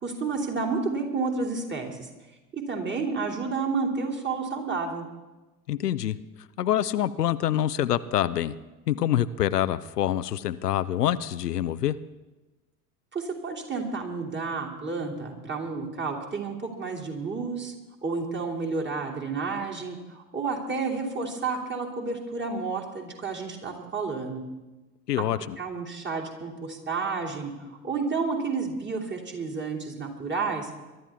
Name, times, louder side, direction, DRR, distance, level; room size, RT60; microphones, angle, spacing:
voice 1, 0.0-2.1 2.5-5.1 13.1-17.7 18.0-24.4 25.2-25.3 25.6-30.7, right 4 dB, 25° right, 0 dB, 2.9 m, -31 dB
voice 2, 5.7-6.2 6.6-8.5 8.9-11.9 25.1-25.6, left 11 dB, 80° left, 14 dB, 0.6 m, -26 dB
22.5 x 12.0 x 3.6 m, 1.1 s
figure-of-eight pair, 75°, 47 cm